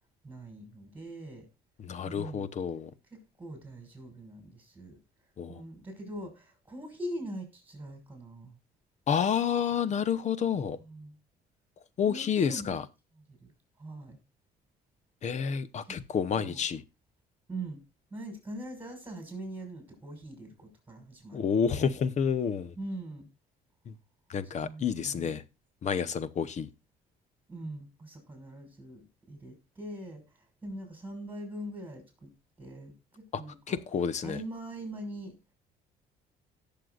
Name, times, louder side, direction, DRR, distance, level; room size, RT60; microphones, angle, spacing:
voice 1, 0.2-1.5 2.0-2.5 3.1-5.0 5.5-8.6 10.8-11.2 12.1-12.8 13.3-13.5 13.8-14.2 15.8-16.0 16.3-16.6 17.5-17.8 18.1-21.9 22.8-23.3 24.5-25.4 27.5-32.3 32.6-33.8 34.2-35.4, right 1 dB, 10° right, 4 dB, 5.7 m, -42 dB
voice 2, 1.8-2.9 5.4-5.6 9.1-10.8 12.0-12.8 15.2-16.8 21.3-22.7 23.9-24.0 24.3-25.4 25.8-26.7 33.3-33.4 33.7-34.4, left 7 dB, 45° left, 16 dB, 0.9 m, -29 dB
17.5 x 6.9 x 2.4 m, 0.26 s
cardioid pair, 110°, 17 cm